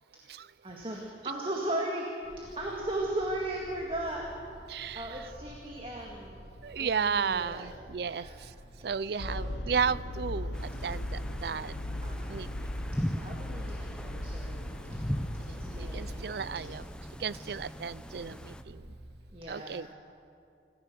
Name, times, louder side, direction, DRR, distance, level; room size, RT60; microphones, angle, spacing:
voice 1, 0.6-4.6 4.9-6.5 6.8-7.7 8.0-8.4 9.1-9.6 12.0-12.4 13.1-15.0 15.5-16.7 19.3-19.9, right 1 dB, 30° right, -1 dB, 1.9 m, -37 dB
sound 1, 2.2-19.1, right 1 dB, 35° left, 2.8 m, -50 dB
voice 2, 4.7-5.3 6.6-8.5 8.8-11.7 12.3-12.7 15.5-16.8 17.2-18.9 19.5-19.9, right 6 dB, 60° right, 19 dB, 0.4 m, -34 dB
sound 2, 9.2-17.5, left 1 dB, 80° left, 0.9 m, -38 dB
sound 3, 10.5-18.6, equal, 5° left, 0.7 m, -40 dB
26.5 x 14.5 x 6.8 m, 2.5 s
head